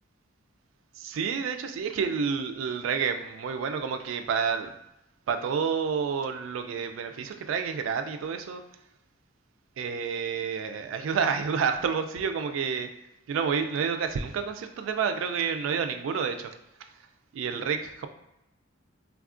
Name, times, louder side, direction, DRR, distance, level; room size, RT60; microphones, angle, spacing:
voice 1, 1.0-4.7 5.3-8.6 9.8-12.9 13.3-16.5 17.3-18.1, right 6 dB, 80° right, 8 dB, 0.3 m, -29 dB
3.4 x 2.3 x 2.4 m, 0.86 s
head